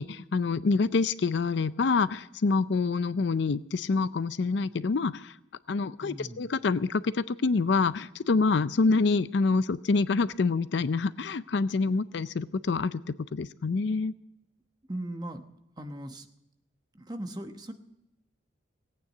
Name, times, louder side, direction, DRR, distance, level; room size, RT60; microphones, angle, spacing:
voice 1, 0.0-5.3 5.7-14.1, left 4 dB, 60° left, 16 dB, 0.4 m, -26 dB
voice 2, 6.0-6.5 14.9-15.4 15.8-16.3 16.9-17.7, right 1 dB, 20° right, 7 dB, 1.0 m, -38 dB
17.5 x 9.2 x 8.2 m, 0.88 s
head